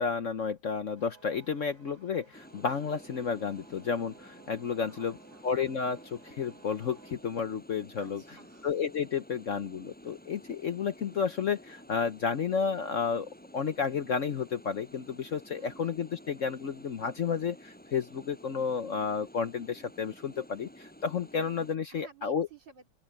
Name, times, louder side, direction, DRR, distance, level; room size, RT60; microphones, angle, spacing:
voice 1, 0.0-5.1 5.4-8.2 8.6-22.5, left 6 dB, 50° left, 1.0 m, -32 dB
sound 1, 1.0-7.2, right 5 dB, 90° right, 5.1 m, -59 dB
sound 2, 2.3-21.8, equal, 5° left, 7.0 m, -52 dB
voice 2, 4.8-5.5 8.0-8.7 15.6-16.0 21.9-22.9, right 7 dB, 70° right, 3.9 m, -54 dB
open air
omnidirectional pair, 2.0 m